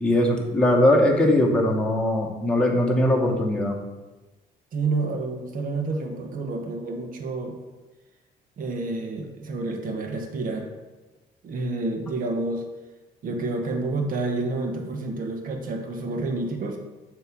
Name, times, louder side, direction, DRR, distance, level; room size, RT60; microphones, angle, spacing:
voice 1, 0.0-3.8, left 1 dB, 5° left, -1 dB, 1.1 m, -20 dB
voice 2, 4.7-7.5 8.6-10.7 11.4-12.6 13.2-16.8, right 3 dB, 55° right, 3 dB, 1.1 m, -29 dB
7.3 x 3.0 x 6.0 m, 1.1 s
cardioid pair, 110°, 17 cm